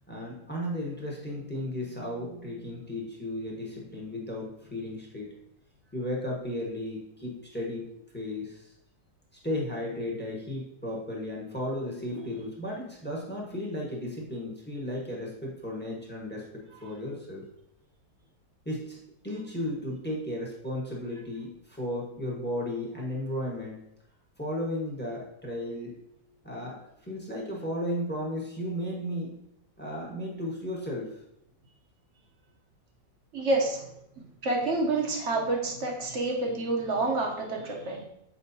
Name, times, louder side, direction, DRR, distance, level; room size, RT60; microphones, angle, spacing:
voice 1, 0.1-5.4 5.9-8.7 9.4-17.4 18.6-19.0 19.2-23.8 24.4-26.0 26.4-29.4 29.8-31.2, left 1 dB, 10° left, -3 dB, 0.8 m, -34 dB
voice 2, 33.3-33.8 34.2-38.0, right 2 dB, 50° right, 0 dB, 0.9 m, -28 dB
7.3 x 4.8 x 2.7 m, 0.79 s
omnidirectional pair, 2.0 m